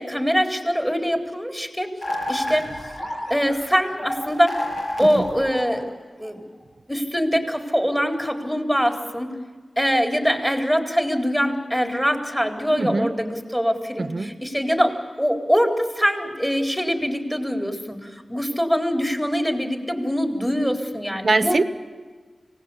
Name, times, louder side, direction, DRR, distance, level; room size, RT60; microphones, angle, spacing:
voice 1, 0.0-1.9 2.3-2.7 3.3-4.6 5.0-5.9 6.2-6.4 6.9-9.3 9.8-21.6, equal, 5° left, 3 dB, 4.0 m, -23 dB
sound 1, 2.0-6.2, left 1 dB, 60° left, 7.6 m, -30 dB
voice 2, 12.8-13.1 14.0-14.3 21.2-21.6, right 3 dB, 60° right, 11 dB, 1.1 m, -22 dB
25.5 x 18.5 x 8.3 m, 1.5 s
cardioid pair, 55°, 0 cm